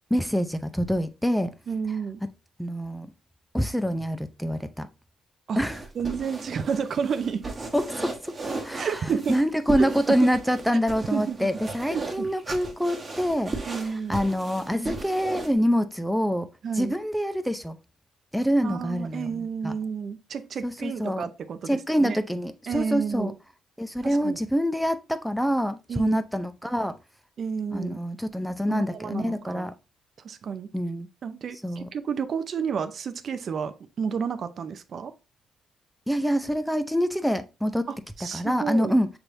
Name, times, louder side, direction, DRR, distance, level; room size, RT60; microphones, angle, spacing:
voice 1, 0.1-1.5 2.6-3.1 3.5-4.9 5.6-5.8 7.7-13.6 14.1-16.5 16.8-17.8 18.3-19.7 20.6-21.2 21.7-23.3 23.8-27.0 27.7-29.7 30.7-31.1 31.6-31.9 36.1-37.9 38.3-39.1, equal, ahead, 0.5 m, -26 dB
voice 2, 1.7-2.2 5.5-5.6 6.0-7.5 8.7-9.4 9.8-10.2 11.1-11.5 11.9-12.3 13.7-14.2 16.6-17.0 18.6-22.2 22.7-23.3 24.0-24.4 25.9-26.2 27.4-28.0 28.7-29.7 30.2-30.7 31.2-35.1 37.9-38.9, right 6 dB, 55° right, 0.5 m, -31 dB
sound 1, 5.6-15.5, right 3 dB, 30° right, 1.1 m, -36 dB
5.9 x 3.4 x 2.6 m
cardioid pair, 90°, 0 cm